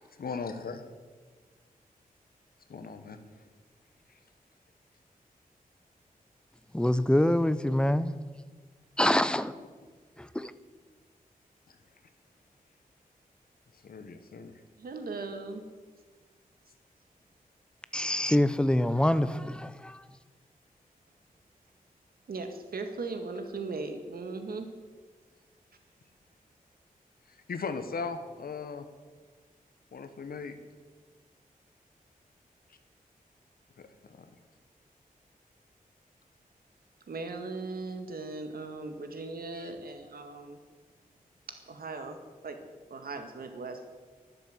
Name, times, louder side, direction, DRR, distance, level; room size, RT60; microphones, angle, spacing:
voice 1, 0.1-0.8 2.7-3.2 13.8-14.5 27.3-28.9 29.9-30.6 33.8-34.3 39.5-39.7, left 5 dB, 85° left, 9 dB, 1.4 m, -38 dB
voice 2, 6.7-8.1 9.0-9.5 10.3-10.5 17.9-20.0, left 1 dB, 5° left, 14 dB, 0.7 m, -25 dB
voice 3, 14.8-15.6 22.3-24.7 37.1-40.6 41.5-42.6 42.9-43.9, right 3 dB, 90° right, 6 dB, 1.9 m, -38 dB
12.0 x 11.5 x 7.9 m, 1.5 s
wide cardioid pair, 105°, 15 cm